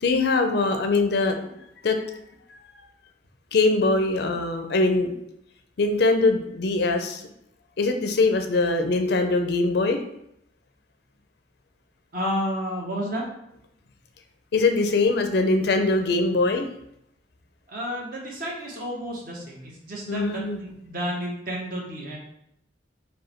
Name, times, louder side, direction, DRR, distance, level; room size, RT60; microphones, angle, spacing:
voice 1, 0.0-1.5 1.8-2.2 3.5-5.1 5.8-7.2 7.8-10.0 14.5-16.7 20.1-20.6, left 3 dB, 65° left, 6 dB, 0.5 m, -22 dB
voice 2, 12.1-13.2 17.7-22.2, equal, 50° right, -2 dB, 1.2 m, -31 dB
4.7 x 2.3 x 4.4 m, 0.77 s
head